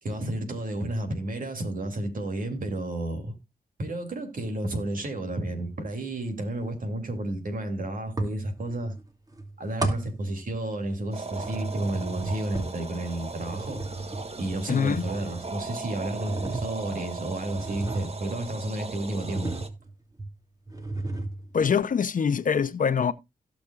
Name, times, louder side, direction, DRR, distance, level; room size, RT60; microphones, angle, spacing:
voice 1, 0.0-3.4 3.8-9.0 9.6-13.8 14.4-19.5, right 1 dB, 65° right, 3.1 m, -32 dB
sound 1, 5.1-5.2 8.2-9.0 9.3-11.0 11.3-18.6 19.1-19.9 20.2-20.3 20.7-21.6, right 2 dB, 25° right, 2.7 m, -34 dB
sound 2, 11.1-19.7, right 3 dB, 40° right, 1.5 m, -38 dB
voice 2, 14.7-15.0 21.5-23.1, left 6 dB, 60° left, 0.9 m, -24 dB
17.0 x 6.2 x 2.5 m
cardioid pair, 60°, 16 cm